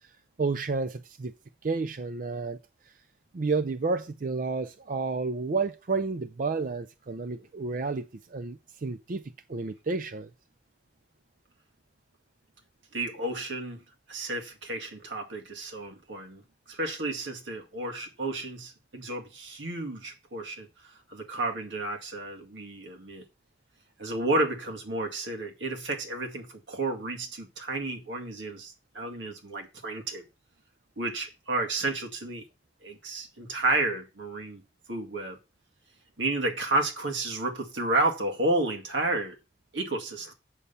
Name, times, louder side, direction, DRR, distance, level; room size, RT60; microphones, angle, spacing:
voice 1, 0.4-1.3 1.6-2.6 3.3-8.1 8.3-9.2 9.5-10.3, right 4 dB, 45° right, 0.5 m, -30 dB
voice 2, 12.9-13.8 14.1-16.4 16.7-20.7 21.1-23.2 24.0-30.2 31.0-32.4 32.8-34.6 34.9-35.4 36.2-39.4 39.7-40.3, right 2 dB, 85° right, 2.1 m, -31 dB
8.2 x 6.9 x 5.5 m
head